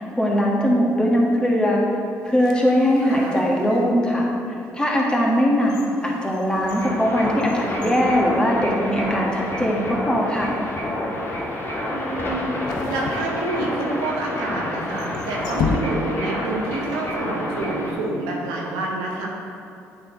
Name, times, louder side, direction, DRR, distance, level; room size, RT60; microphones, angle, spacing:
voice 1, 0.0-1.8 2.2-4.3 4.7-10.5, equal, 10° left, -3 dB, 1.5 m, -20 dB
sound 1, 2.2-4.0 4.6-4.7 5.3-9.0 9.3-9.4 10.3-10.6 12.6-14.0 14.8-16.4 16.6-16.7, left 5 dB, 70° left, 0.5 m, -34 dB
voice 2, 3.0-3.4 11.9-12.5 12.8-19.3, right 2 dB, 85° right, -2 dB, 1.0 m, -28 dB
sound 2, 6.6-17.9, left 1 dB, 35° left, 1.5 m, -29 dB
8.0 x 4.3 x 3.9 m, 2.6 s
hypercardioid pair, 55°, 7 cm